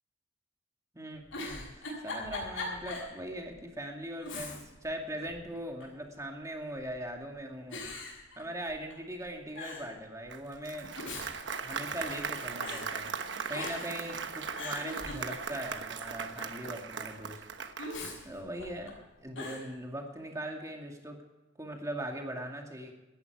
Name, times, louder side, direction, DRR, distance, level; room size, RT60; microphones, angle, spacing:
voice 1, 0.9-7.8 8.4-10.9 11.6-13.1 13.5-17.4 18.2-18.9 19.2-21.2 21.6-22.9, right 1 dB, 15° right, 2 dB, 2.4 m, -40 dB
Giggle, 1.1-3.1 3.5-3.6 4.2-4.9 5.2-6.0 6.8-7.2 7.7-8.9 9.2-9.3 9.5-9.9 10.7-12.3 12.6-12.9 13.5-14.0 14.3-15.7 17.8-18.9 19.3-19.7, left 2 dB, 75° left, 7.3 m, -40 dB
Applause, 10.3-18.2, right 5 dB, 65° right, 1.2 m, -39 dB
18.0 x 14.0 x 4.9 m, 1.1 s
head